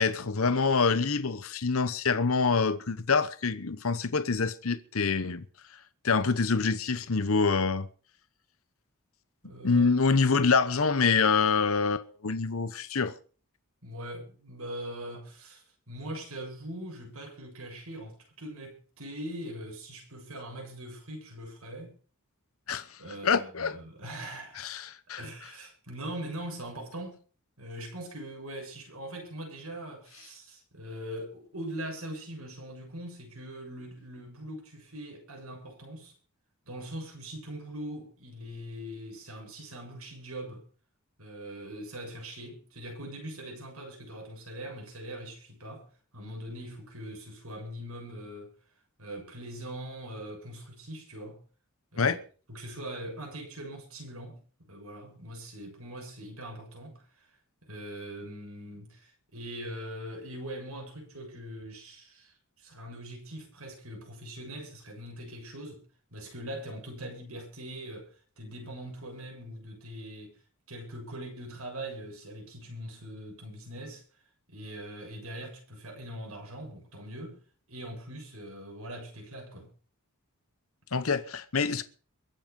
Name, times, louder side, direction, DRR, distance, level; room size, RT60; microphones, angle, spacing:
voice 1, 0.0-5.4 6.0-7.9 9.6-13.1 22.7-22.9 23.2-23.8 24.6-25.2 52.0-52.2 80.9-81.8, left 4 dB, 70° left, 0.9 m, -26 dB
voice 2, 9.4-10.0 13.8-21.9 23.0-24.7 25.2-27.2 27.6-36.1 36.7-40.7 41.2-45.9 46.1-48.5 49.0-51.4 51.9-52.2 52.5-57.3 57.6-70.4 70.7-74.0 74.5-77.4 77.7-79.7, right 1 dB, 75° right, 7.2 m, -42 dB
23.0 x 7.8 x 5.4 m
head